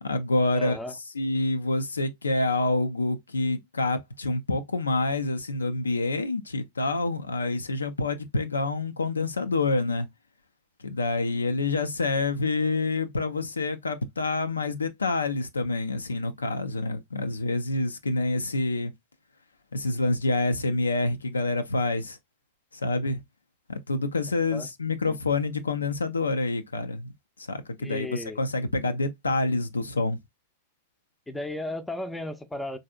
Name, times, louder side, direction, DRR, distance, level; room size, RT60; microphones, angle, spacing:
voice 1, 0.0-10.1 10.8-18.9 19.7-22.2 22.7-23.2 23.7-27.1 27.4-30.2, left 2 dB, 75° left, 0.4 m, -27 dB
voice 2, 0.5-0.9 24.5-24.7 25.1-25.2 27.8-28.4 31.3-32.8, left 1 dB, 5° left, 0.5 m, -34 dB
4.0 x 2.6 x 2.2 m
figure-of-eight pair, 90°, 0 cm